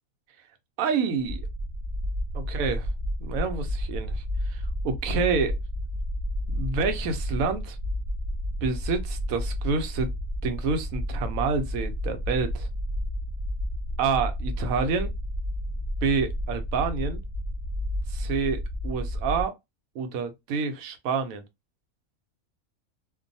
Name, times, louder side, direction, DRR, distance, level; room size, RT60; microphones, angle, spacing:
voice 1, 0.8-1.5 2.3-2.9 3.2-5.6 6.5-7.8 8.6-10.1 10.4-12.7 14.0-15.1 16.0-17.2 18.1-19.5 19.9-21.4, right 5 dB, 80° right, 1.0 m, -28 dB
sound 1, 1.2-19.4, equal, 50° right, 0.6 m, -31 dB
2.5 x 2.2 x 2.6 m
omnidirectional pair, 1.5 m